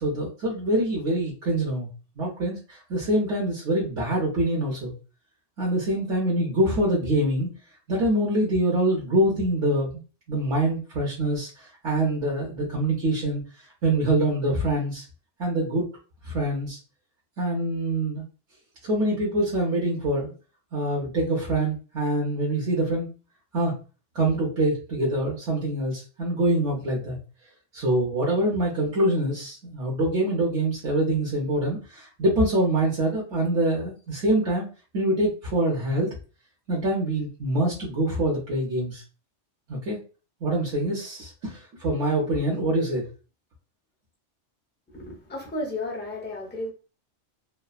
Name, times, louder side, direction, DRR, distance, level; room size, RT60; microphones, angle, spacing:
voice 1, 0.0-1.9 2.2-4.9 5.6-7.5 7.9-9.9 10.3-13.4 13.8-15.0 15.4-15.9 16.2-16.8 17.4-18.2 18.8-20.3 20.7-23.1 23.5-23.8 24.1-27.2 27.7-34.7 34.9-36.1 36.7-39.0 39.7-40.0 40.4-43.1, right 1 dB, 75° right, 1.1 m, -25 dB
voice 2, 44.9-46.7, left 2 dB, 10° left, 0.5 m, -33 dB
3.2 x 2.0 x 2.3 m
omnidirectional pair, 1.3 m